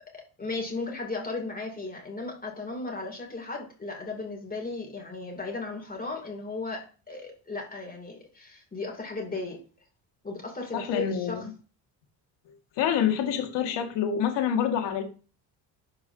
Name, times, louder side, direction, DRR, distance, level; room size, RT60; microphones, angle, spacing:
voice 1, 0.4-9.6 10.2-11.5, left 3 dB, 20° left, 0 dB, 2.8 m, -35 dB
voice 2, 10.7-11.4 12.8-15.0, left 8 dB, 75° left, 5 dB, 2.0 m, -26 dB
12.0 x 4.8 x 2.8 m, 0.36 s
supercardioid pair, 85°, 43 cm